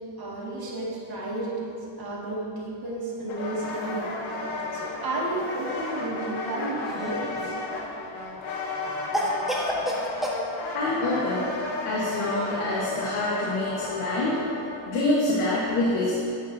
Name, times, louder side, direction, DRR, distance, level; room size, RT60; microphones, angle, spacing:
voice 1, 0.2-7.6 11.1-11.3 11.6-11.7, right 2 dB, 45° right, -5 dB, 2.0 m, -32 dB
sound 1, 3.3-15.0, left 3 dB, 65° left, 1.3 m, -33 dB
Cough, 6.8-7.6 9.1-10.4, equal, ahead, 1.1 m, -29 dB
voice 2, 10.7-11.4 11.8-14.5 14.8-16.2, left 2 dB, 85° left, -5 dB, 1.3 m, -26 dB
9.3 x 8.4 x 2.6 m, 2.7 s
cardioid pair, 110°, 50 cm